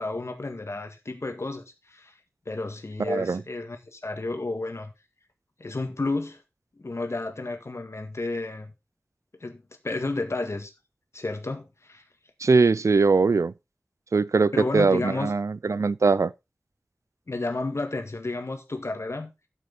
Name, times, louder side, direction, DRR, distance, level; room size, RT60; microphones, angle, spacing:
voice 1, 0.0-2.1 2.5-4.9 5.6-6.4 6.8-8.7 9.4-10.7 11.1-12.0 14.5-15.3 17.3-19.3, left 2 dB, 65° left, 1.7 m, -31 dB
voice 2, 3.1-3.4 12.4-13.5 14.1-16.3, right 4 dB, 80° right, 0.4 m, -21 dB
8.8 x 7.9 x 4.1 m
wide cardioid pair, 55°, 5 cm